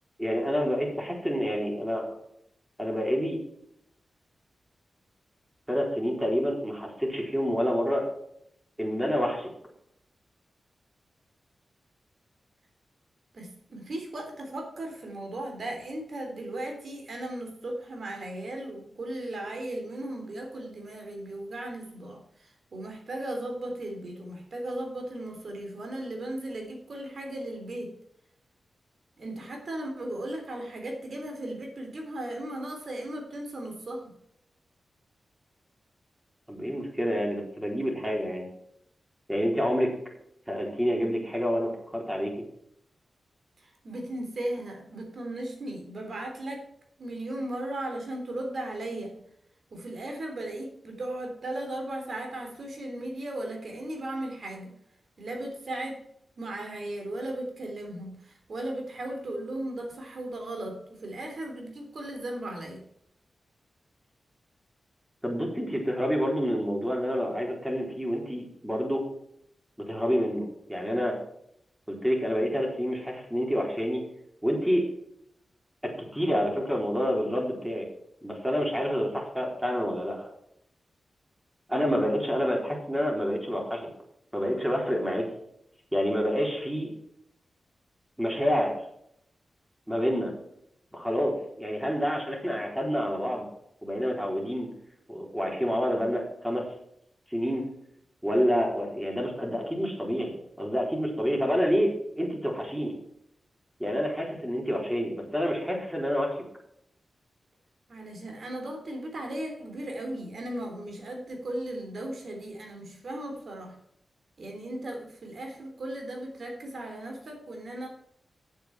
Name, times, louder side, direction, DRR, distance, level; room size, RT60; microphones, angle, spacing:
voice 1, 0.2-2.0 2.8-3.4 5.7-8.0 8.8-9.5 36.5-38.5 39.3-39.9 40.5-42.3 65.2-69.0 69.9-71.2 71.9-74.0 74.4-74.8 75.8-77.8 78.2-80.3 81.7-83.9 84.3-85.2 85.9-86.9 88.2-88.8 89.9-90.3 90.9-93.4 93.8-94.7 95.1-96.6 97.3-97.6 98.2-101.9 102.2-103.0 103.8-106.3, equal, 5° right, 0 dB, 4.1 m, -28 dB
voice 2, 13.3-27.9 29.2-34.1 43.6-46.7 47.0-49.1 49.7-54.7 55.2-56.0 56.4-62.8 107.9-113.8 114.4-117.9, right 1 dB, 65° right, 3 dB, 3.5 m, -36 dB
9.1 x 7.6 x 5.9 m, 0.74 s
cardioid pair, 50°, 0 cm